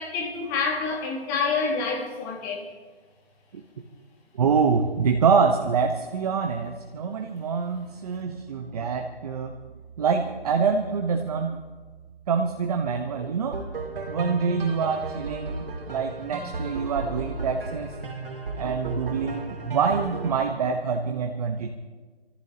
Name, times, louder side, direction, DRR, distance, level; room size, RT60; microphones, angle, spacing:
voice 1, 0.0-2.6 7.9-8.0, left 4 dB, 20° left, 0 dB, 2.1 m, -28 dB
voice 2, 4.4-9.5 10.0-11.6 12.3-13.6 14.1-17.9 18.6-21.7, right 5 dB, 40° right, 4 dB, 1.0 m, -25 dB
sound 1, 13.5-20.3, right 2 dB, 65° right, 3.3 m, -34 dB
28.0 x 14.5 x 2.9 m, 1.4 s
hypercardioid pair, 160°, 31 cm